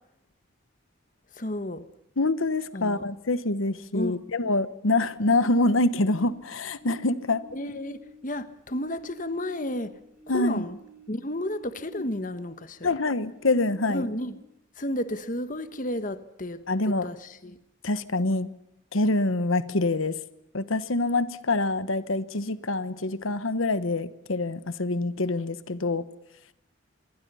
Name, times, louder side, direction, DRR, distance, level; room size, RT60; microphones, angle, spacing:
voice 1, 1.3-1.8 2.7-3.1 3.9-4.2 7.5-9.9 10.3-10.8 11.1-12.9 13.9-14.4 14.8-17.6, left 1 dB, 40° left, 1.3 m, -32 dB
voice 2, 2.2-7.4 10.3-10.6 11.9-12.0 12.8-14.1 16.7-17.1 17.8-18.5 18.9-20.2 20.5-26.1, left 2 dB, 80° left, 1.2 m, -25 dB
sound 1, 5.8-8.3 8.6-12.6 12.9-14.6, left 1 dB, 5° right, 3.8 m, -51 dB
26.0 x 22.5 x 5.6 m
head